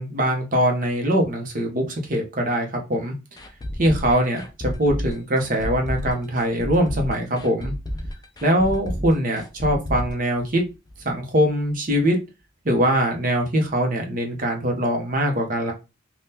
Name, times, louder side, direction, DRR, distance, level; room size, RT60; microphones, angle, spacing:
voice 1, 0.0-3.2 3.7-7.7 8.4-10.6 11.0-12.2 12.6-15.7, equal, 40° right, 2 dB, 0.7 m, -22 dB
sound 1, 3.4-11.1 11.4-11.5 11.9-12.0, equal, 20° left, 0.3 m, -31 dB
3.6 x 2.3 x 2.7 m, 0.27 s
head